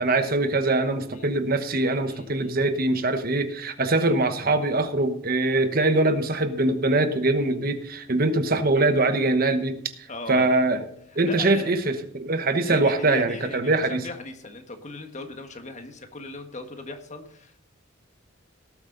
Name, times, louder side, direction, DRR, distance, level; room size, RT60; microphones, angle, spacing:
voice 1, 0.0-9.8 10.3-10.8 11.2-14.0, right 2 dB, 45° right, 9 dB, 1.1 m, -23 dB
voice 2, 1.1-1.5 2.1-2.5 10.1-10.5 11.3-11.8 12.6-17.6, left 2 dB, 35° left, 6 dB, 1.6 m, -39 dB
18.5 x 8.2 x 3.9 m, 0.67 s
head